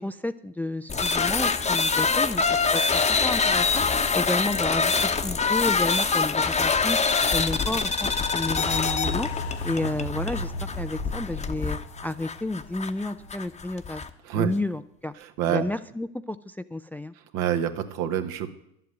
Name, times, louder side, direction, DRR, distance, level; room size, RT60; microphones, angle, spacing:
voice 1, 0.0-2.4 2.7-3.8 4.1-7.0 7.3-9.3 9.6-14.0 14.3-15.1 15.5-17.1, left 2 dB, 5° left, 11 dB, 0.4 m, -31 dB
sound 1, 0.9-14.1, left 4 dB, 20° left, 1.0 m, -25 dB
sound 2, 7.2-13.6 14.0-14.1, left 3 dB, 85° left, 0.9 m, -36 dB
voice 2, 15.2-15.6 17.3-18.5, right 10 dB, 70° right, 7 dB, 1.4 m, -27 dB
11.5 x 7.8 x 8.1 m, 0.79 s
hypercardioid pair, 85°, 33 cm